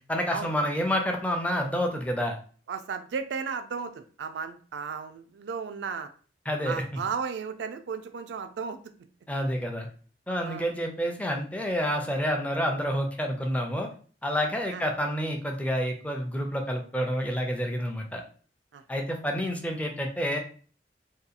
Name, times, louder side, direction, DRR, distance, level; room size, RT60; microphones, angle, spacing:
voice 1, 0.1-2.4 6.5-6.8 9.3-9.9 10.3-13.9 14.2-18.2 18.9-20.4, equal, 10° left, 2 dB, 0.4 m, -28 dB
voice 2, 2.7-6.1 6.6-8.8 10.4-10.7 14.7-14.8 18.7-18.8, right 6 dB, 70° right, 8 dB, 0.3 m, -34 dB
2.8 x 2.3 x 2.4 m, 0.42 s
head